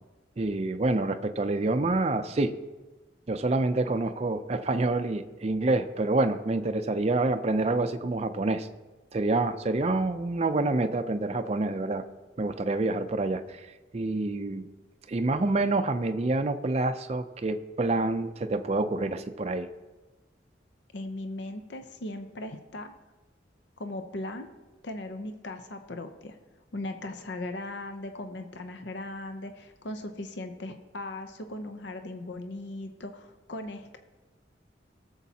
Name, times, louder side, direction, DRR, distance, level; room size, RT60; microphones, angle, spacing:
voice 1, 0.4-2.5 3.3-8.7 9.1-12.0 12.4-13.6 13.9-14.7 15.1-19.7, right 2 dB, 35° right, 8 dB, 0.4 m, -27 dB
voice 2, 20.9-22.9 23.8-24.5 24.8-26.4 26.7-34.0, left 2 dB, 70° left, 7 dB, 0.7 m, -38 dB
19.0 x 7.2 x 2.8 m, 1.2 s
head